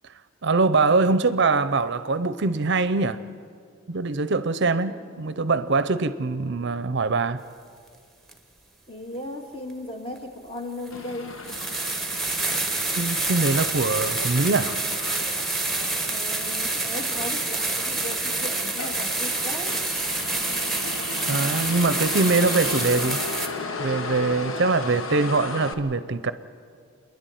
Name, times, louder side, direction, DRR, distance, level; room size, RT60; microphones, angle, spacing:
voice 1, 0.4-3.2 3.9-7.4 13.0-14.8 21.3-23.2 23.8-26.3, right 3 dB, 55° right, 0.6 m, -23 dB
sound 1, 8.3-8.4 10.2-10.3 10.9-11.0 11.4-23.5, right 3 dB, ahead, 1.5 m, -27 dB
voice 2, 8.9-11.6 16.1-19.8, left 1 dB, 25° left, 2.0 m, -36 dB
Motor vehicle (road), 10.9-25.7, left 3 dB, 70° left, 1.3 m, -36 dB
29.5 x 11.0 x 9.2 m
head